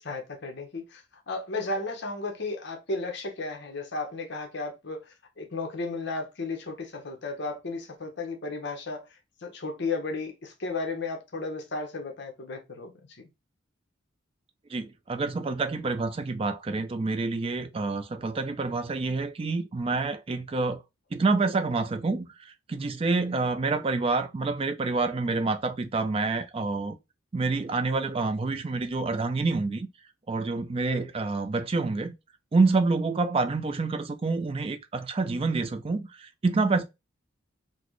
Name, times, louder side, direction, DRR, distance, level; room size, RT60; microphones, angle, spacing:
voice 1, 0.0-9.1 9.4-12.9 13.2-13.3, left 3 dB, 55° left, 0.8 m, -34 dB
voice 2, 14.7-20.8 21.1-27.0 27.3-29.9 30.3-32.1 32.5-36.8, right 3 dB, 30° right, 0.3 m, -27 dB
3.9 x 2.0 x 3.1 m
head